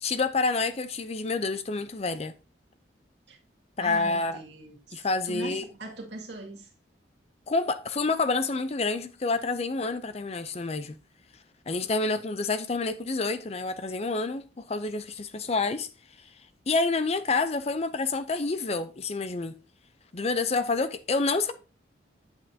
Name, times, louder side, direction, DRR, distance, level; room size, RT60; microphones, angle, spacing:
voice 1, 0.0-2.3 3.8-4.4 4.9-5.6 7.5-10.9 11.7-15.9 16.7-19.5 20.1-21.5, left 3 dB, 35° left, 0.5 m, -28 dB
voice 2, 3.8-6.7, right 2 dB, 70° right, 2.1 m, -41 dB
8.8 x 7.8 x 2.8 m
head